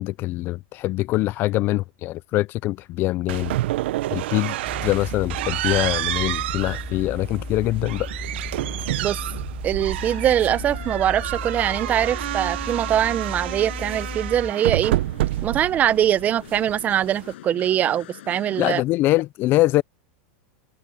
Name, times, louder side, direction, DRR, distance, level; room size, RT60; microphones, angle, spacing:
voice 1, 0.0-3.6 4.1-4.6 4.8-8.1 18.6-19.8, left 17 dB, 35° left, 0.4 m, -23 dB
sound 1, 3.3-17.3, right 16 dB, 75° right, 0.7 m, -29 dB
sound 2, 4.6-14.5, left 2 dB, 5° left, 4.9 m, -35 dB
voice 2, 9.6-15.0 15.4-18.8, right 10 dB, 25° right, 0.7 m, -22 dB
sound 3, 10.0-18.8, left 15 dB, 80° left, 7.8 m, -44 dB
supercardioid pair, 145°, 6 cm